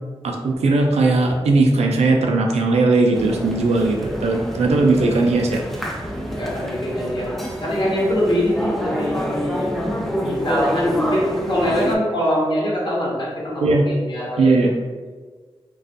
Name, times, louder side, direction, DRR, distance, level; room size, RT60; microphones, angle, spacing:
voice 1, 0.2-5.6 13.6-13.9 14.4-14.7, right 3 dB, 90° right, 2 dB, 0.4 m, -18 dB
sound 1, 3.1-12.0, equal, ahead, 0.4 m, -27 dB
voice 2, 6.3-7.3 7.6-9.7 10.2-14.5, equal, 50° left, -5 dB, 0.9 m, -23 dB
2.4 x 2.3 x 2.5 m, 1.4 s
cardioid pair, 55°, 11 cm